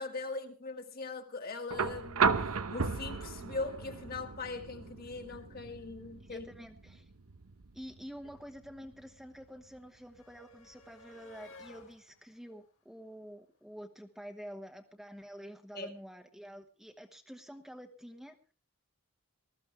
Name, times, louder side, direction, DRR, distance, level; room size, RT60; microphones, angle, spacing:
voice 1, 0.0-2.4 2.7-6.5 15.7-15.9, left 3 dB, 40° left, 1.8 m, -40 dB
sound 1, 1.7-9.7 11.2-11.3, right 5 dB, 80° right, 0.9 m, -35 dB
voice 2, 6.2-7.1 7.7-18.4, equal, ahead, 1.2 m, -48 dB
sound 2, 7.4-7.5 7.6-13.8 15.0-15.1 15.4-15.5, left 3 dB, 60° left, 2.5 m, -59 dB
20.0 x 14.0 x 3.4 m
head